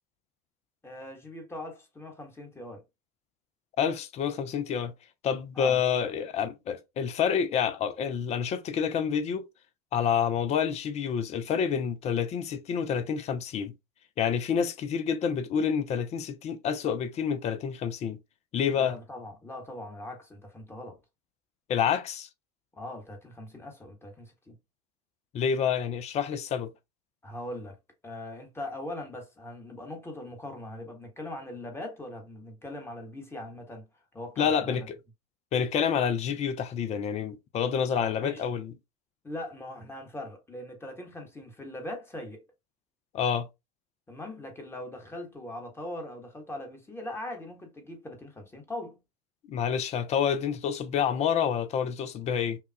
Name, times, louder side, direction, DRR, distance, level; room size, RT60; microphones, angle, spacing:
voice 1, 0.8-2.8 5.5-5.8 18.7-21.0 22.8-24.6 27.2-27.8 28.0-33.9 34.1-34.9 37.9-38.4 39.2-42.4 44.1-49.0, left 1 dB, 10° left, 1.2 m, -41 dB
voice 2, 3.8-4.9 5.2-9.4 9.9-13.7 14.2-18.2 18.5-19.0 21.7-22.3 25.3-26.7 34.4-35.0 35.5-38.7 43.1-43.5 49.5-52.6, left 7 dB, 30° left, 0.6 m, -28 dB
5.5 x 2.3 x 2.2 m
figure-of-eight pair, 80°, 21 cm